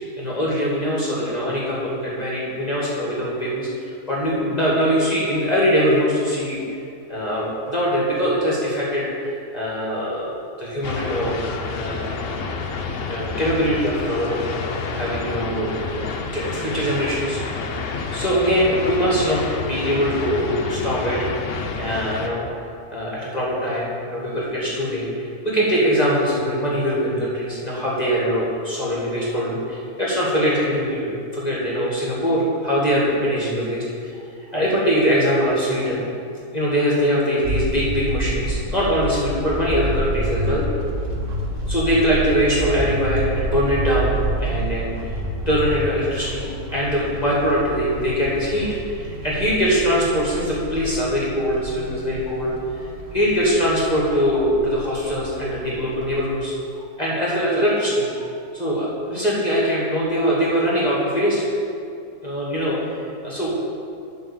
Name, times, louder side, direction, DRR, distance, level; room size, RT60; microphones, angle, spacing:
voice 1, 0.2-6.6 7.1-10.3 10.6-11.3 11.7-12.4 13.1-14.5 14.9-17.7 18.1-21.3 21.8-22.5 22.9-34.2 34.5-36.0 36.5-40.6 41.7-58.3 58.5-61.5 62.2-63.5, equal, 25° left, -6 dB, 2.0 m, -22 dB
sound 1, 10.8-22.3, left 4 dB, 55° left, 0.7 m, -29 dB
sound 2, 37.4-56.3, right 1 dB, 40° right, 1.0 m, -29 dB
11.5 x 3.9 x 7.1 m, 2.5 s
omnidirectional pair, 1.6 m